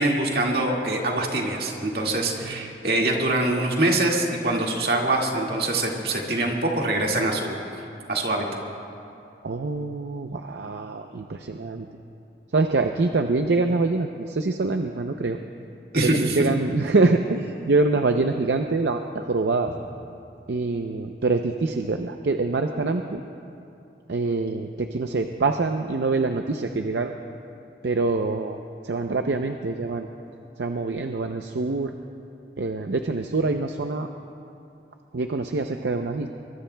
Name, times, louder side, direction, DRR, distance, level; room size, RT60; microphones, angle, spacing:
voice 1, 0.0-7.6 8.1-8.5 15.9-16.4, right 2 dB, 60° right, -1 dB, 2.0 m, -24 dB
voice 2, 9.4-11.9 12.5-15.4 15.9-19.7 20.5-23.2 24.1-27.1 27.8-28.6 28.8-30.1 30.6-31.9 32.6-34.1 35.1-36.3, right 3 dB, 80° right, 5 dB, 0.6 m, -25 dB
24.0 x 23.5 x 2.3 m, 2.7 s
head